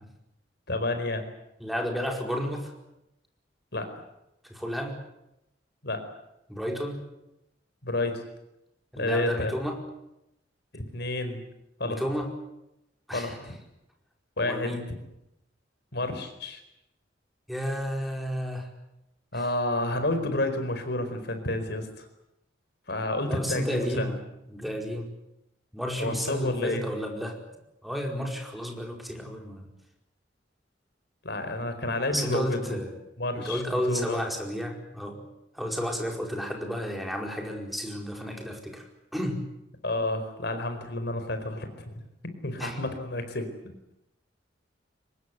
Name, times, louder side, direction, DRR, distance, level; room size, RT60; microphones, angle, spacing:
voice 1, 0.7-1.3 3.7-3.9 5.8-6.0 7.8-8.2 9.0-9.5 10.7-11.4 11.8-12.0 13.1-13.3 14.4-14.7 15.9-16.6 19.3-22.1 22.9-24.0 26.0-26.8 31.2-32.6 33.2-34.2 39.8-43.9, left 2 dB, 65° left, 8 dB, 4.7 m, -30 dB
voice 2, 1.6-2.7 4.4-5.0 6.5-7.0 8.9-9.8 11.8-12.3 13.1-13.5 14.4-14.9 17.5-18.7 19.3-19.5 23.2-24.2 24.5-25.1 25.7-27.4 27.8-29.7 32.1-33.0 33.4-35.2 35.5-39.4 42.6-42.8, equal, ahead, 1 dB, 4.8 m, -32 dB
24.0 x 20.0 x 9.5 m, 0.86 s
head